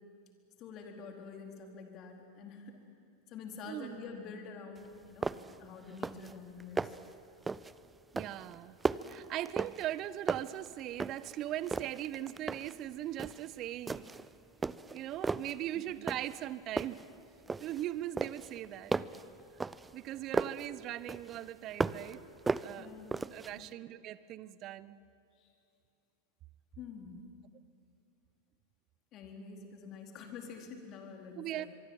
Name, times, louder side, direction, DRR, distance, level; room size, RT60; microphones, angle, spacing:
voice 1, 0.6-2.8 3.3-7.0 15.7-15.9 22.8-23.3 23.5-23.7 25.4-25.5 26.8-27.2 29.1-31.7, left 5 dB, 40° left, 3 dB, 4.2 m, -47 dB
voice 2, 3.7-4.0 8.1-8.8 9.1-14.1 14.9-17.0 17.6-18.9 19.9-22.2 22.6-22.9 23.3-25.0 31.4-31.7, right 13 dB, 40° right, 17 dB, 0.9 m, -39 dB
sound 1, 4.8-4.9 5.2-5.6 5.9-6.3 6.6-7.1 7.5-7.8 8.2-10.0 10.3-11.4 11.7-12.8 13.2-13.5 13.9-14.3 14.6-15.6 16.1-16.5 16.8-17.8 18.2-20.7 21.1-22.2 22.5-23.5, right 4 dB, 15° right, 0.6 m, -36 dB
24.0 x 24.0 x 8.9 m, 2.6 s
figure-of-eight pair, 90°, 0 cm